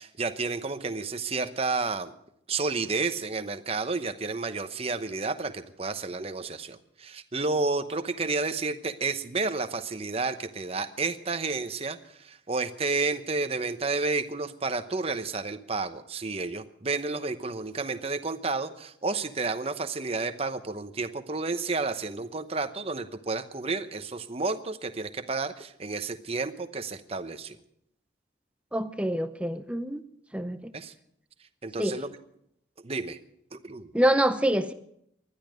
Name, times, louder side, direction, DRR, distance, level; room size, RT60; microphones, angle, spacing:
voice 1, 0.0-2.1 2.5-27.6 30.7-30.9 31.6-32.1 32.8-33.2 33.5-33.9, right 3 dB, 30° right, 9 dB, 0.9 m, -31 dB
voice 2, 28.7-30.0 30.3-30.7 31.8-32.0 33.9-34.7, right 1 dB, 5° right, 10 dB, 0.6 m, -26 dB
20.0 x 13.0 x 5.1 m, 0.73 s
head